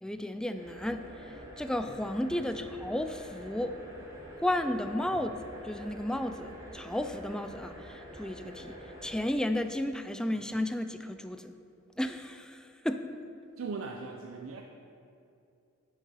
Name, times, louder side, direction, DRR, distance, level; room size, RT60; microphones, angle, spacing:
voice 1, 0.0-3.8 4.4-8.8 9.0-11.5 12.0-13.1, left 1 dB, 5° left, 8 dB, 0.3 m, -33 dB
sound 1, 0.5-9.2, equal, 20° right, 1.6 m, -47 dB
voice 2, 13.6-14.6, right 4 dB, 80° right, 2 dB, 0.5 m, -39 dB
8.5 x 6.4 x 5.4 m, 2.5 s
head